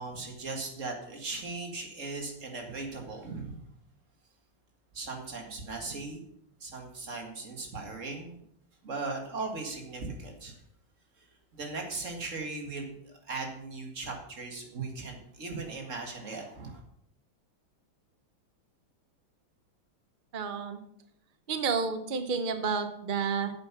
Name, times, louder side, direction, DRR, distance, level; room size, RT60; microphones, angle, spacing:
voice 1, 0.0-3.6 4.9-6.2 6.6-8.4 8.8-10.6 11.2-11.3 11.5-16.8, right 3 dB, 35° right, 2 dB, 2.1 m, -38 dB
voice 2, 20.3-20.8 21.5-23.5, right 5 dB, 85° right, 8 dB, 0.4 m, -30 dB
9.0 x 7.8 x 6.0 m, 0.71 s
omnidirectional pair, 2.3 m